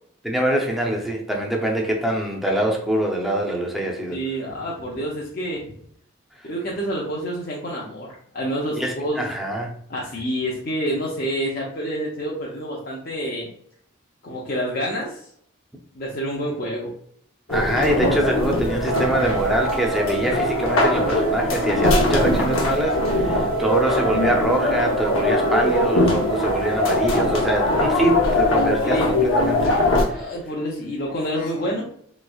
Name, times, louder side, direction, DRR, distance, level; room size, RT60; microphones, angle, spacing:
voice 1, 0.2-4.2 8.7-9.7 17.5-30.3, right 1 dB, ahead, 0 dB, 0.5 m, -24 dB
voice 2, 4.1-5.7 6.4-9.3 9.9-13.5 14.2-15.2 15.9-16.9 28.8-29.1 29.9-31.9, equal, 45° left, -4 dB, 0.5 m, -28 dB
sound 1, 17.5-30.0, left 2 dB, 90° left, 0.8 m, -21 dB
Wind instrument woodwind instrument, 18.9-28.2, right 12 dB, 85° right, 0.5 m, -31 dB
3.4 x 3.1 x 2.3 m, 0.66 s
head